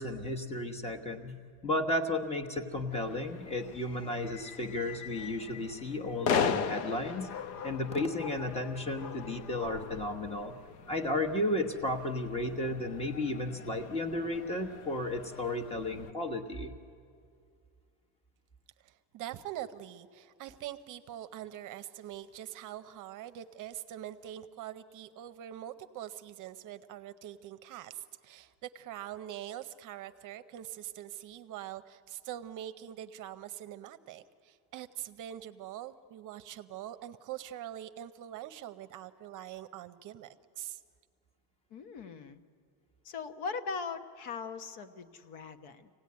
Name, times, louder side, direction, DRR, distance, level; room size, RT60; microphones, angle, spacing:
voice 1, 0.0-7.4 7.6-10.5 10.9-16.7, left 1 dB, 15° left, 4 dB, 1.1 m, -33 dB
sound 1, 2.9-16.1, left 6 dB, 85° left, 1.1 m, -39 dB
voice 2, 18.8-40.8, right 12 dB, 45° right, 11 dB, 0.7 m, -44 dB
voice 3, 41.7-42.4 43.0-45.9, left 5 dB, 65° left, 8 dB, 1.2 m, -40 dB
24.5 x 17.5 x 9.5 m, 2.3 s
cardioid pair, 165°, 44 cm